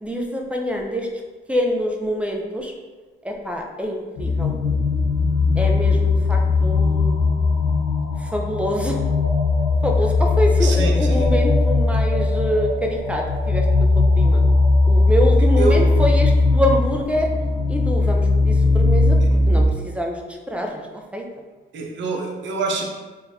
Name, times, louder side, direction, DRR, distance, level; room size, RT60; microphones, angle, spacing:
voice 1, 0.0-1.1 1.5-2.7 3.2-4.5 5.5-7.4 8.2-9.1 9.8-13.7 14.2-14.4 14.8-17.3 17.7-19.2 19.5-20.2 20.5-20.9 21.1-21.2, equal, 5° right, 1 dB, 0.6 m, -25 dB
sound 1, 4.2-19.7, left 3 dB, 90° left, 0.9 m, -18 dB
voice 2, 10.6-11.3 15.6-15.9 21.7-22.8, right 3 dB, 70° right, 1 dB, 0.8 m, -25 dB
3.8 x 2.5 x 4.3 m, 1.3 s
cardioid pair, 90°, 20 cm